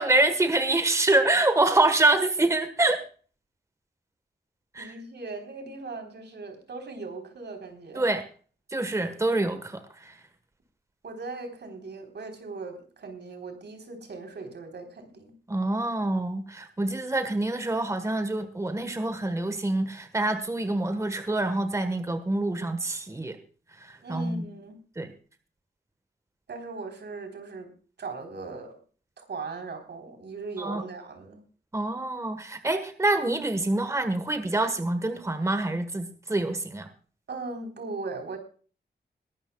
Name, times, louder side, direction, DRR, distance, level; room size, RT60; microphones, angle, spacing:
voice 1, 0.0-3.0 4.7-4.9 8.0-8.2 8.7-10.1 15.5-23.4 23.8-24.4 25.0-25.1 30.6-30.8 31.7-36.9, right 2 dB, 15° right, 9 dB, 1.3 m, -26 dB
voice 2, 4.8-8.1 11.0-15.3 24.0-24.8 26.5-27.7 28.0-28.8 29.2-31.4 37.3-38.4, right 3 dB, 80° right, 5 dB, 3.8 m, -39 dB
21.0 x 12.5 x 2.3 m, 0.40 s
wide cardioid pair, 150°, 18 cm